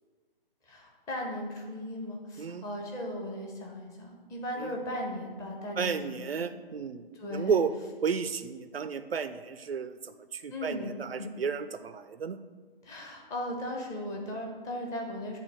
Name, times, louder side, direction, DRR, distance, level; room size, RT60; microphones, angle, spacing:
voice 1, 0.7-6.5 7.1-7.6 10.5-10.9 11.2-11.3 12.8-15.4, left 1 dB, 10° left, 0 dB, 0.8 m, -37 dB
voice 2, 5.8-7.7 8.0-9.9 10.3-12.4, right 6 dB, 85° right, 11 dB, 0.5 m, -32 dB
8.2 x 3.6 x 6.1 m, 1.4 s
figure-of-eight pair, 130°, 29 cm